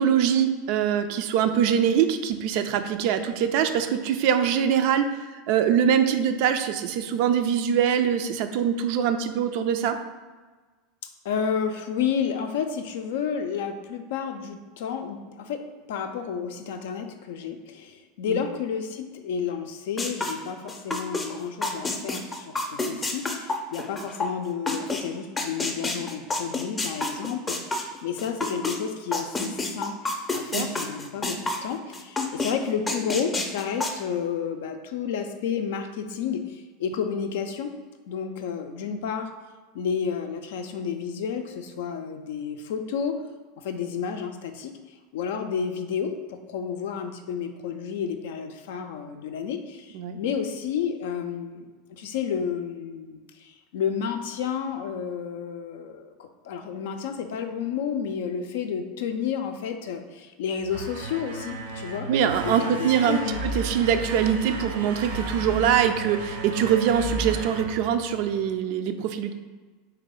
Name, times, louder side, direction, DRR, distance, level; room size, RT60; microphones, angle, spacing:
voice 1, 0.0-5.2 5.5-10.0 18.3-18.4 30.5-30.6 49.9-50.2 62.1-69.3, right 8 dB, 60° right, 8 dB, 0.3 m, -23 dB
voice 2, 11.2-30.0 30.3-37.7 38.1-39.3 39.7-43.1 43.6-62.1 62.4-63.4, left 7 dB, 65° left, 6 dB, 0.4 m, -31 dB
sound 1, 20.0-21.3 21.6-25.0 25.4-28.8 29.1-31.7 31.9-32.5 32.9-33.9, left 3 dB, 20° left, 0.6 m, -28 dB
sound 2, 60.6-68.5, right 2 dB, 75° right, 0.7 m, -34 dB
3.3 x 3.3 x 3.6 m, 1.3 s
figure-of-eight pair, 80°, 0 cm